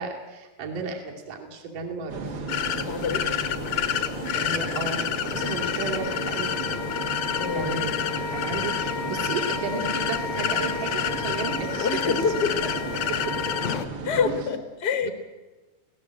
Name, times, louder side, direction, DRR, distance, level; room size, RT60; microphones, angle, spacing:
voice 1, 0.0-2.4 4.4-6.8 7.5-7.9 8.3-12.3 13.2-13.3 14.3-14.6 15.0-15.1, right 4 dB, 60° right, 1 dB, 4.0 m, -33 dB
sound 1, 2.1-14.5, right 4 dB, 45° right, 1.8 m, -35 dB
sound 2, 2.5-13.9, left 10 dB, 65° left, 1.9 m, -30 dB
voice 2, 2.9-3.3 7.4-7.8 11.8-12.7 14.0-15.1, left 6 dB, 45° left, 7 dB, 1.3 m, -26 dB
Wind instrument woodwind instrument, 5.3-13.7, left 5 dB, 85° left, 3.3 m, -34 dB
25.5 x 17.5 x 7.7 m, 1.2 s
omnidirectional pair, 4.1 m